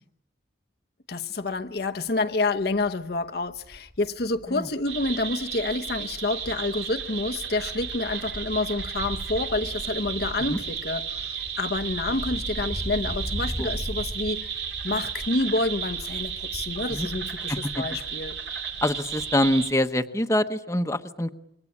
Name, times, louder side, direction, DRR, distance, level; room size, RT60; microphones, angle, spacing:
voice 1, 1.1-18.4, left 2 dB, 60° left, 1.0 m, -28 dB
Wind, 1.6-1.8 2.2-2.3 2.6-6.1 6.4-18.6 18.9-19.0, equal, 20° right, 2.0 m, -39 dB
sound 1, 4.9-19.7, right 7 dB, 75° right, 3.6 m, -34 dB
voice 2, 17.5-17.8 18.8-21.3, left 1 dB, 15° left, 1.0 m, -25 dB
27.0 x 23.5 x 8.6 m
head